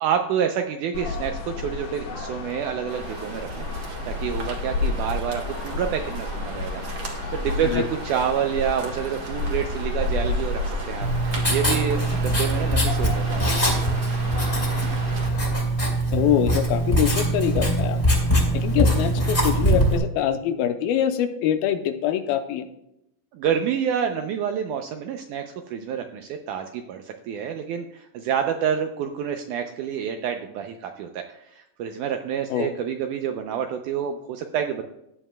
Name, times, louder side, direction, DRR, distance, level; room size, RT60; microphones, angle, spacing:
voice 1, 0.0-3.7 4.0-6.8 7.1-11.1 11.5-13.5 23.3-34.8, right 8 dB, 80° right, 5 dB, 1.8 m, -28 dB
sound 1, 0.9-15.6, left 3 dB, 65° left, 1.9 m, -31 dB
sound 2, 2.9-15.3, right 3 dB, 50° right, 2.2 m, -36 dB
Writing, 11.0-20.0, right 1 dB, 15° left, 2.6 m, -22 dB
voice 2, 16.1-18.0 18.5-22.7 32.5-32.7, left 10 dB, 85° left, 8 dB, 2.5 m, -24 dB
14.5 x 10.0 x 2.2 m, 0.82 s
omnidirectional pair, 4.2 m